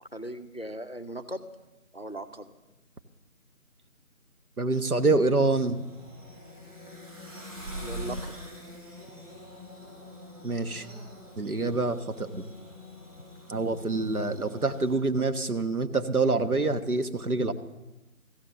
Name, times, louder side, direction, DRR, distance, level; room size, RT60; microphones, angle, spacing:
voice 1, 0.0-1.5 1.9-2.5 6.9-7.0 7.8-8.3, right 1 dB, 40° left, 10 dB, 0.6 m, -38 dB
voice 2, 4.6-5.8 10.4-10.9 11.4-12.4 13.5-17.5, right 3 dB, 75° right, 8 dB, 1.3 m, -26 dB
sound 1, 4.7-15.0, equal, 55° right, 5.5 m, -44 dB
15.0 x 8.6 x 6.7 m, 1.0 s
figure-of-eight pair, 175°, 45 cm